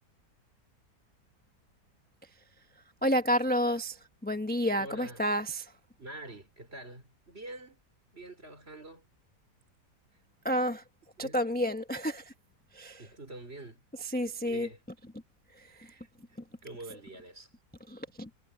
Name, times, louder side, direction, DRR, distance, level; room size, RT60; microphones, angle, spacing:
voice 1, 3.0-5.7 10.4-10.8 11.2-12.3 12.7-13.0 14.1-14.7 15.8-15.9 17.9-18.3, equal, 5° left, 0.9 m, -30 dB
voice 2, 4.8-5.2 6.0-7.8 8.1-9.1 11.2-11.4 13.0-14.8 15.6-17.5, right 2 dB, 35° right, 4.7 m, -47 dB
omnidirectional pair, 1.8 m